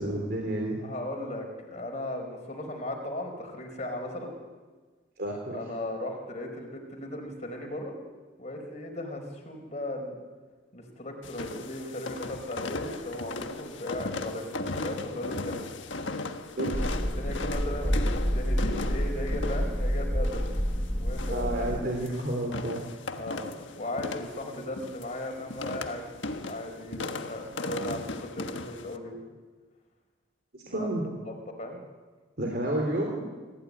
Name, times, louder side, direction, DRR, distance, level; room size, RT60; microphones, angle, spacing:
voice 1, 0.0-0.8 5.2-5.6 16.6-16.7 21.3-22.8 30.5-31.0 32.4-33.2, right 1 dB, 50° right, 0 dB, 3.5 m, -30 dB
voice 2, 0.8-4.3 5.5-7.9 8.4-10.2 10.7-15.7 17.0-20.4 21.0-21.7 23.1-26.0 26.5-29.2 30.7-31.3 31.6-31.8, left 1 dB, 35° left, 2 dB, 4.7 m, -37 dB
sound 1, 11.2-29.0, left 2 dB, 70° left, 1.5 m, -37 dB
sound 2, 16.7-21.8, equal, 10° left, 1.0 m, -28 dB
25.5 x 15.0 x 9.7 m, 1.4 s
head